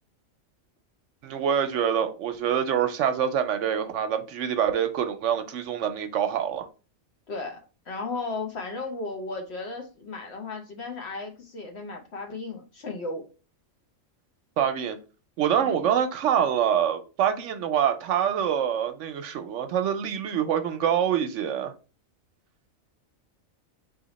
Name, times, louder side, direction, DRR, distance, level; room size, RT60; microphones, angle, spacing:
voice 1, 1.2-6.7 14.6-15.0 15.4-21.7, right 9 dB, 70° right, 0.8 m, -25 dB
voice 2, 7.3-13.2 15.6-15.8, left 3 dB, 55° left, 1.1 m, -35 dB
4.1 x 2.8 x 3.9 m
omnidirectional pair, 1.4 m